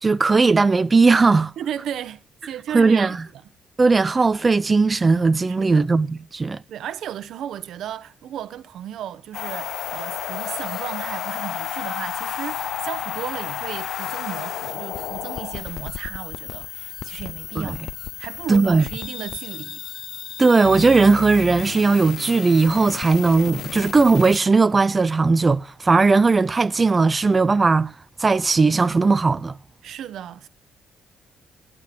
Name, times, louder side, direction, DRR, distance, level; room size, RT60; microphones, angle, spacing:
voice 1, 0.0-1.5 2.7-3.2 3.8-6.6 17.6-17.8 18.5-18.8 20.4-27.9 28.2-29.6, right 4 dB, 30° right, 0.4 m, -18 dB
voice 2, 1.6-3.2 5.5-5.9 6.7-17.8 18.2-19.8 29.8-30.5, right 10 dB, 75° right, 0.8 m, -34 dB
sound 1, 9.3-24.4, left 9 dB, 70° left, 0.5 m, -32 dB
11.5 x 8.3 x 5.0 m
cardioid pair, 90°, 0 cm